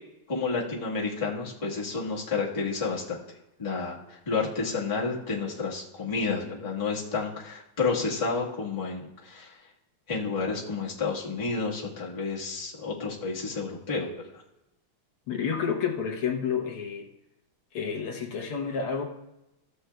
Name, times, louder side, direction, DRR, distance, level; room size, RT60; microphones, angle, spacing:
voice 1, 0.3-3.2 3.6-9.6 10.1-14.1, left 4 dB, 20° left, -6 dB, 1.2 m, -30 dB
voice 2, 15.3-17.1 17.7-19.0, left 6 dB, 80° left, 1 dB, 1.9 m, -30 dB
14.0 x 7.9 x 2.3 m, 0.91 s
omnidirectional pair, 2.4 m